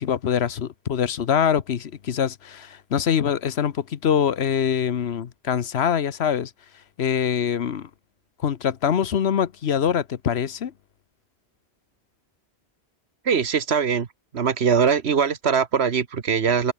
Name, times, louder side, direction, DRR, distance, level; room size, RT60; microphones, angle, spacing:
voice 1, 0.0-6.5 7.0-7.9 8.4-10.7, left 8 dB, 80° left, 1.2 m, -24 dB
voice 2, 13.2-14.1 14.3-16.7, right 6 dB, 75° right, 1.5 m, -21 dB
open air
omnidirectional pair, 1.1 m